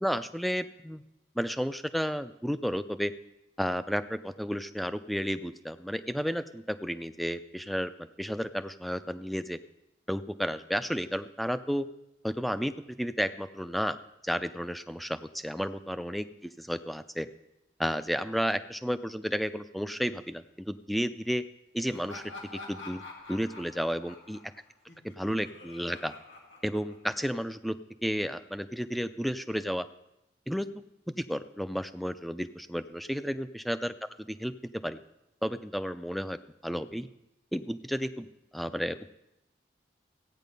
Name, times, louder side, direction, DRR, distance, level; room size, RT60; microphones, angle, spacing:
voice 1, 0.0-1.0 1.4-3.1 3.6-7.9 8.2-9.6 10.1-11.9 12.2-14.0 14.2-17.3 17.8-21.4 21.7-22.2 22.7-23.0 23.3-24.4 25.2-26.1 26.6-27.8 28.0-29.9 30.5-30.7 31.2-33.9 34.3-34.5 34.8-35.0 35.4-36.4 36.6-37.1 37.5-38.3 38.5-39.0, equal, ahead, 11 dB, 0.4 m, -32 dB
Laughter, 21.9-27.3, left 2 dB, 85° left, 2.7 m, -47 dB
16.0 x 9.1 x 5.3 m, 0.90 s
head